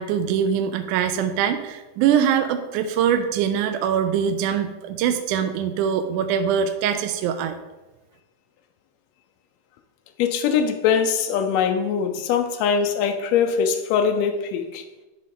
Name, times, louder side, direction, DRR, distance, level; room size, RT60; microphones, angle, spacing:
voice 1, 0.0-7.6, right 8 dB, 80° right, 8 dB, 2.0 m, -23 dB
voice 2, 10.2-14.8, left 7 dB, 85° left, 5 dB, 1.5 m, -22 dB
11.0 x 3.8 x 3.7 m, 1.1 s
omnidirectional pair, 3.7 m